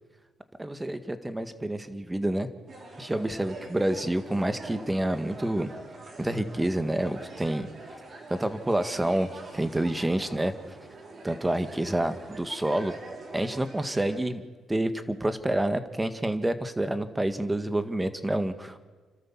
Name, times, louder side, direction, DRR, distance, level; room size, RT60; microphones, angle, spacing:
voice 1, 0.6-2.5 3.0-5.7 6.2-7.7 8.3-10.5 11.2-12.9 13.3-14.4 14.7-18.8, right 1 dB, 10° right, 10 dB, 1.8 m, -28 dB
sound 1, 2.7-14.2, right 2 dB, 45° right, 5.3 m, -45 dB
30.0 x 13.0 x 7.4 m, 1.5 s
cardioid pair, 90°, 0 cm